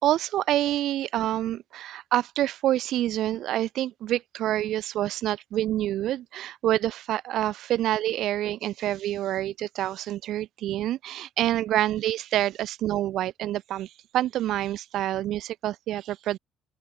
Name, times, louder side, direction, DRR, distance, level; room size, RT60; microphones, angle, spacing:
voice 1, 0.0-16.4, right 13 dB, 65° right, 3.8 m, -27 dB
open air
cardioid pair, 150°, 0 cm